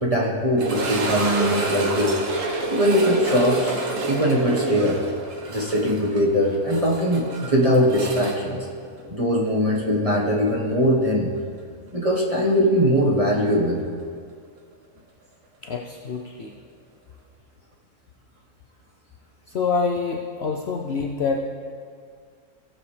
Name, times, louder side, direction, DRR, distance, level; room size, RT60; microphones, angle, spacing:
voice 1, 0.0-2.2 2.7-3.7 4.1-5.0 5.5-8.6 9.1-11.3 11.9-13.8, equal, 25° right, -4 dB, 1.3 m, -21 dB
sound 1, 0.6-9.5 9.8-9.9 10.5-10.6 13.2-13.3, right 2 dB, 60° right, 1.4 m, -29 dB
voice 2, 15.6-16.5 19.5-21.4, left 5 dB, 55° left, 0 dB, 0.8 m, -26 dB
17.0 x 7.0 x 3.3 m, 2.1 s
omnidirectional pair, 1.6 m